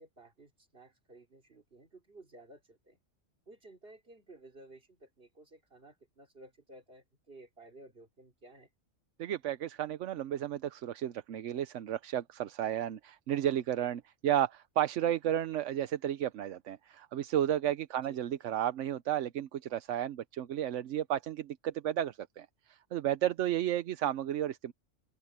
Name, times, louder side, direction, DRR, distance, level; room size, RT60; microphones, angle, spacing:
voice 1, 0.0-3.0 3.5-8.7 18.0-18.2, right 2 dB, 50° right, 3.5 m, -55 dB
voice 2, 9.2-24.7, right 11 dB, 80° right, 1.0 m, -33 dB
open air
omnidirectional pair, 1.2 m